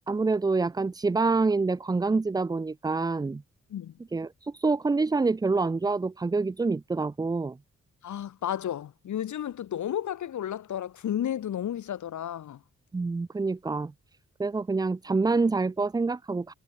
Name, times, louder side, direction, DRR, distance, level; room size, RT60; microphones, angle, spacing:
voice 1, 0.1-3.4 4.1-7.6 12.9-13.9 14.4-16.5, right 3 dB, 15° right, 0.3 m, -26 dB
voice 2, 8.0-12.6, left 10 dB, 85° left, 0.9 m, -32 dB
cardioid pair, 75°, 29 cm